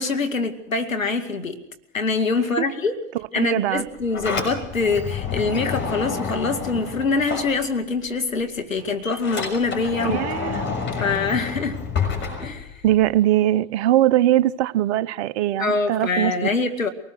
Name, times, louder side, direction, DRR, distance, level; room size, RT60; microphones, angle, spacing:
voice 1, 0.0-1.6 1.9-3.0 3.3-10.2 11.0-11.8 12.4-12.8 15.6-16.9, left 4 dB, 85° left, 6 dB, 2.3 m, -24 dB
voice 2, 3.4-3.9 10.0-10.6 12.8-16.3, right 13 dB, 55° right, 18 dB, 0.9 m, -21 dB
Sliding door, 3.8-8.1 8.4-13.1, left 5 dB, 30° left, 6.5 m, -29 dB
23.5 x 19.5 x 6.5 m, 0.83 s
figure-of-eight pair, 85°, 39 cm